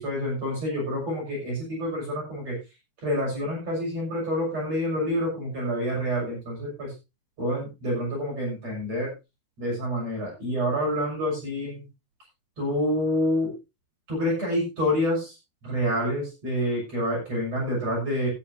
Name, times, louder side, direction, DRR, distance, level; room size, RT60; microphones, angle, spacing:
voice 1, 0.0-2.6 3.0-6.9 7.4-9.1 9.6-11.9 12.6-13.5 14.1-15.3 15.6-18.3, equal, 40° right, -3 dB, 7.7 m, -27 dB
14.5 x 13.0 x 2.7 m, 0.26 s
omnidirectional pair, 4.8 m